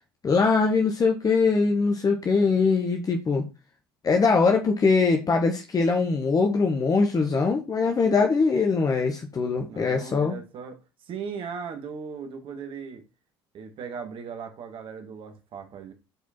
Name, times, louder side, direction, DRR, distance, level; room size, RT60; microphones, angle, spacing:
voice 1, 0.2-3.4 4.0-10.3, left 4 dB, 30° left, 1.4 m, -22 dB
voice 2, 9.7-13.0 13.5-15.9, right 6 dB, 45° right, 2.1 m, -38 dB
8.1 x 5.0 x 4.4 m
figure-of-eight pair, 60°, 12 cm